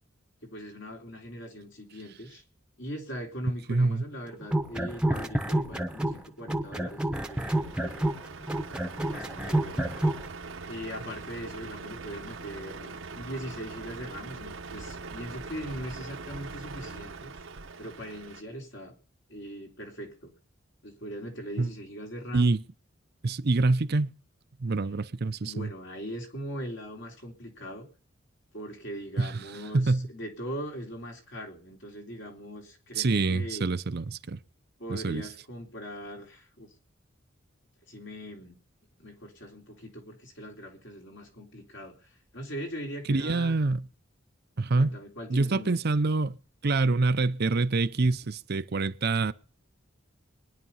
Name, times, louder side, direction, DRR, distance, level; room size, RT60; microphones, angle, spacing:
voice 1, 0.4-2.4 2.8-8.1 9.0-9.8 10.6-17.3 17.8-18.9 19.3-20.3 20.8-22.5 25.4-27.9 28.5-33.7 34.8-36.7 37.9-38.6 39.0-42.0 42.3-43.6 44.8-45.8, equal, 65° left, 3.8 m, -40 dB
voice 2, 3.7-4.0 21.6-21.7 22.3-22.6 23.2-24.1 24.6-25.7 29.2-29.3 29.7-30.1 33.0-34.4 34.9-35.3 43.1-43.8 44.6-45.0 45.3-46.4 46.6-49.3, right 3 dB, 55° right, 0.7 m, -26 dB
sound 1, 4.4-6.2 6.5-10.2, right 1 dB, 5° right, 1.0 m, -28 dB
Truck, 7.2-18.4, right 4 dB, 75° right, 1.1 m, -42 dB
21.5 x 10.5 x 5.6 m
head